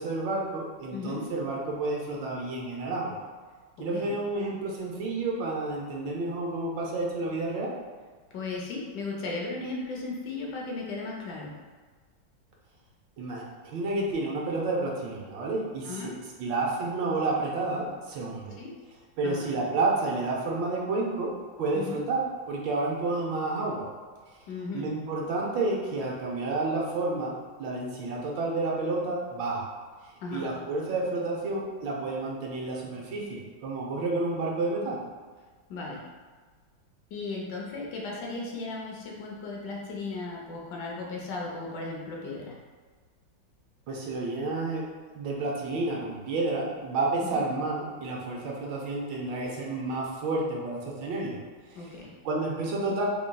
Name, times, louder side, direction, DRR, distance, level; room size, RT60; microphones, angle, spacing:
voice 1, 0.0-3.2 3.8-7.7 13.2-16.1 16.4-18.6 19.2-21.3 21.6-22.2 22.5-23.9 24.7-27.3 27.6-29.7 30.3-35.0 43.9-44.8 45.1-51.4 51.7-51.8 52.2-53.0, right 2 dB, 75° right, -2 dB, 1.4 m, -30 dB
voice 2, 0.9-1.2 3.8-4.1 8.3-11.5 15.8-16.1 18.6-18.7 19.2-19.5 21.7-22.0 24.5-24.9 30.2-30.5 35.7-36.0 37.1-42.6 47.2-47.4 51.7-52.1, left 3 dB, 70° left, -2 dB, 1.1 m, -36 dB
3.9 x 3.8 x 2.2 m, 1.4 s
omnidirectional pair, 2.1 m